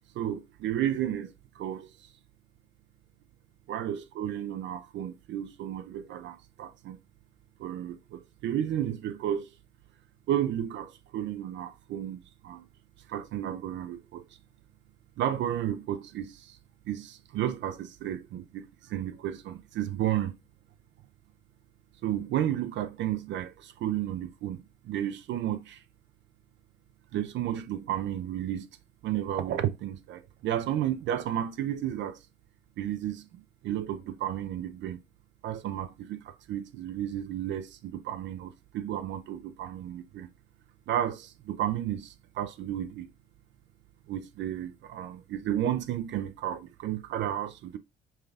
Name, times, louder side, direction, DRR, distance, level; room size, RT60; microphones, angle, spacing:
voice 1, 0.2-2.1 3.7-7.0 7.6-9.5 10.3-12.6 13.1-14.2 15.2-16.6 16.9-20.3 22.0-25.8 27.1-28.7 29.0-32.2 32.8-35.0 35.4-40.3 40.9-43.1 44.1-47.8, right 11 dB, 65° right, 0.5 m, -32 dB
5.6 x 2.3 x 3.3 m
supercardioid pair, 70°, 20 cm